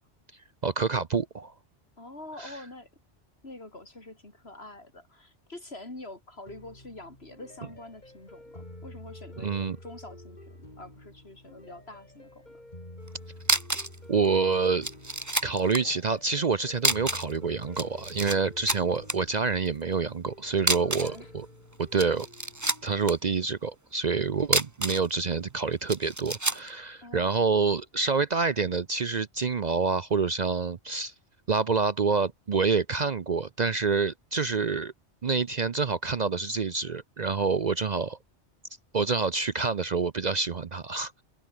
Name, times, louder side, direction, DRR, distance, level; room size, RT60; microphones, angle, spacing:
voice 1, 0.6-1.5 2.4-2.6 9.4-9.8 14.1-14.9 15.4-21.5 21.8-22.3 22.8-31.1 31.5-34.9 35.2-38.2 38.9-41.2, right 5 dB, 45° right, 0.8 m, -27 dB
voice 2, 2.0-2.9 3.4-12.5 20.8-21.3 27.0-27.4, left 2 dB, 65° left, 4.9 m, -45 dB
sound 1, 6.5-23.2, left 1 dB, 40° left, 6.0 m, -49 dB
sound 2, 13.1-13.2 13.4-14.0 14.2-14.3 14.8-15.8 16.8-17.4 17.6-18.4 18.7-19.2 20.6-21.2 21.8-23.1 24.4-25.1 25.9-26.7, right 1 dB, 15° right, 1.6 m, -28 dB
omnidirectional pair, 1.2 m